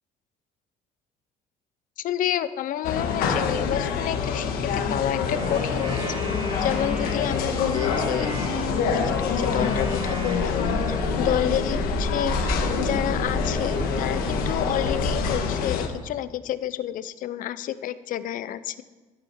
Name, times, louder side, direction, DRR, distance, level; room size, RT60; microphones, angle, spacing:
voice 1, 2.0-6.0 6.6-10.5 10.9-18.8, left 11 dB, 60° left, 15 dB, 0.7 m, -29 dB
sound 1, 2.8-15.9, left 6 dB, 80° left, 1.6 m, -26 dB
Wind instrument woodwind instrument, 5.3-11.5, right 1 dB, 35° right, 2.5 m, -35 dB
sound 2, 7.5-15.3, right 1 dB, 10° right, 4.6 m, -33 dB
13.5 x 8.9 x 4.6 m, 1.3 s
cardioid pair, 110°, 15 cm